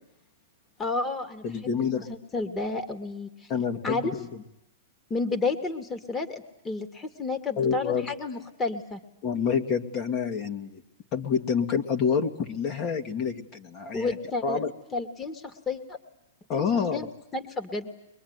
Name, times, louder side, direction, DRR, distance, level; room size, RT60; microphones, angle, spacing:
voice 1, 0.8-3.5 3.8-4.1 5.1-9.0 13.9-14.6 14.9-16.0 16.6-16.7 16.9-17.1 17.3-17.9, left 3 dB, 15° left, 7 dB, 2.2 m, -31 dB
voice 2, 1.4-2.1 3.5-4.2 7.6-8.1 9.2-10.8 11.1-14.1 14.4-14.7 16.5-17.1, left 6 dB, 35° left, 4 dB, 2.2 m, -27 dB
23.5 x 22.0 x 9.6 m, 0.82 s
hypercardioid pair, 135°, 0 cm